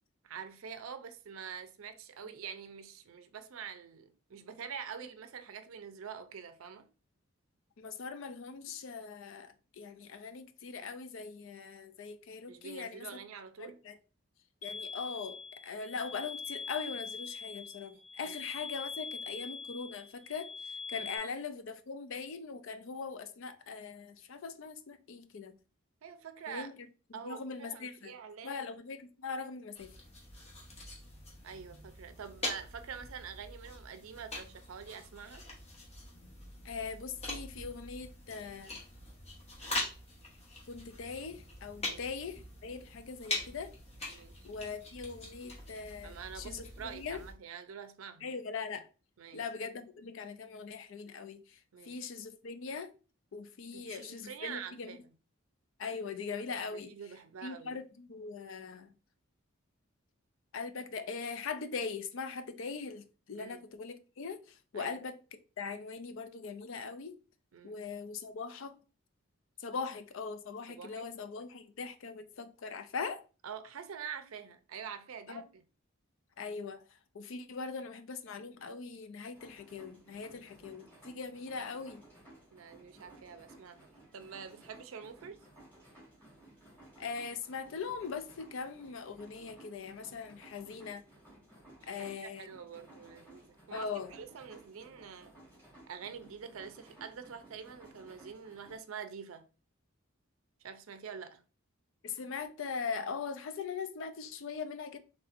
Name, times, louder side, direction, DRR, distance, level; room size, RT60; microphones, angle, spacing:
voice 1, 0.2-6.9 12.5-13.8 18.3-18.4 20.9-21.3 26.0-26.7 27.1-28.6 31.4-35.5 41.8-42.0 44.1-44.5 46.0-48.3 49.2-49.4 51.7-52.0 53.7-55.1 56.7-57.8 63.4-63.7 64.7-65.0 67.5-67.8 70.7-71.1 73.4-75.6 82.5-85.4 91.8-95.4 95.9-99.5 100.6-101.4, right 7 dB, 75° right, 0.5 m, -46 dB
voice 2, 7.8-13.1 13.6-14.0 14.6-25.5 26.5-28.1 28.4-29.9 36.6-38.8 40.7-43.7 44.4-47.2 48.2-48.9 49.3-52.9 53.3-55.0 55.8-56.9 57.4-58.9 60.5-65.2 65.6-67.2 67.6-68.7 69.6-73.2 75.3-75.4 76.4-76.8 77.1-82.0 87.0-91.0 91.8-92.6 93.7-94.1 102.0-105.0, left 5 dB, 65° left, 0.4 m, -41 dB
sound 1, 14.6-21.2, left 5 dB, 90° left, 1.7 m, -43 dB
sound 2, 29.7-47.3, left 2 dB, 30° left, 1.0 m, -43 dB
sound 3, 79.3-98.8, right 1 dB, 10° left, 2.1 m, -58 dB
4.2 x 3.3 x 2.5 m
head